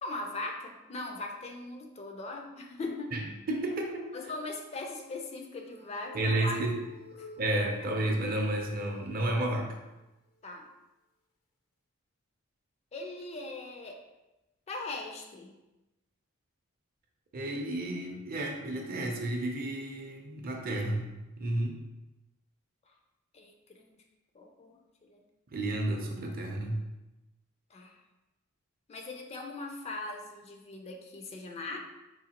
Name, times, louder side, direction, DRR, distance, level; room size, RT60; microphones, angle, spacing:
voice 1, 0.0-3.1 4.1-6.6 7.2-7.3 7.8-7.9 10.4-10.7 12.9-14.0 14.7-15.5 23.3-23.9 24.3-25.2 27.7-28.0 28.9-31.8, left 2 dB, 30° left, 2 dB, 0.3 m, -40 dB
voice 2, 3.1-4.1 6.1-6.8 7.4-9.8 17.3-21.1 21.4-21.8 25.5-26.8, right 1 dB, 45° right, 2 dB, 0.5 m, -31 dB
sound 1, 5.6-9.4 9.9-10.0 10.4-10.5, left 3 dB, 90° left, 0.6 m, -50 dB
3.8 x 2.8 x 2.8 m, 1.0 s
head